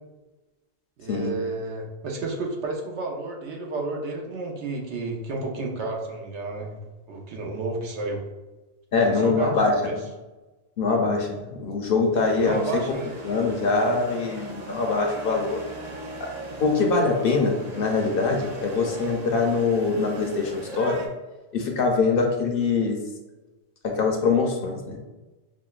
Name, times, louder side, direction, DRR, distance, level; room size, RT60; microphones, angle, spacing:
voice 1, 1.0-6.8 7.1-8.2 9.0-10.0 12.4-13.1, right 3 dB, 85° right, 0 dB, 1.0 m, -31 dB
voice 2, 8.9-9.8 10.8-12.6 13.2-15.6 16.6-21.0 21.5-23.0 23.9-25.0, left 4 dB, 60° left, 1 dB, 0.7 m, -23 dB
sound 1, 12.1-21.1, right 2 dB, 45° right, 0.6 m, -39 dB
6.0 x 2.1 x 2.3 m, 1.1 s
omnidirectional pair, 1.1 m